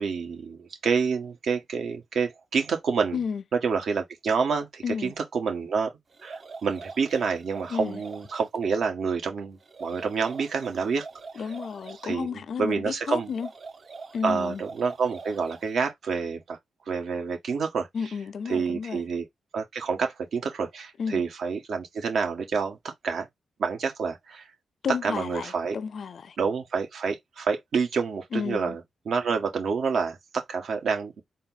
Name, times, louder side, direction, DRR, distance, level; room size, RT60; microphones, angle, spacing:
voice 1, 0.0-3.2 3.6-5.9 6.2-11.0 12.0-13.3 14.2-16.6 16.9-17.9 18.5-19.3 19.5-23.3 23.6-24.5 25.0-25.8 26.4-28.8 29.0-31.2, right 5 dB, 70° right, 1.5 m, -28 dB
voice 2, 3.1-3.4 4.8-5.1 7.7-8.0 11.4-13.5 14.1-14.6 17.9-19.0 21.0-21.2 24.8-26.4 28.3-28.8, left 6 dB, 65° left, 0.4 m, -32 dB
sound 1, 6.1-8.6 9.6-12.1 13.2-15.8, right 4 dB, 50° right, 0.9 m, -44 dB
4.2 x 2.3 x 3.9 m
supercardioid pair, 50°, 0 cm